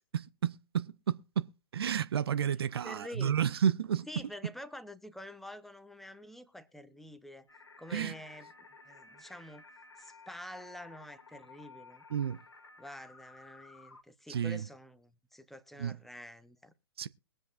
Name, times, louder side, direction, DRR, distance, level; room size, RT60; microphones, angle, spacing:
voice 1, 0.1-4.1 7.9-8.1 12.1-12.4 14.3-14.6 15.8-16.0 17.0-17.1, right 8 dB, 65° right, 0.6 m, -31 dB
voice 2, 2.8-3.3 4.1-7.5 7.8-8.5 8.8-9.7 10.0-12.0 12.8-16.7, left 1 dB, ahead, 0.8 m, -47 dB
sound 1, 7.5-14.0, left 4 dB, 85° left, 1.3 m, -55 dB
22.5 x 7.8 x 2.5 m
figure-of-eight pair, 115°, 14 cm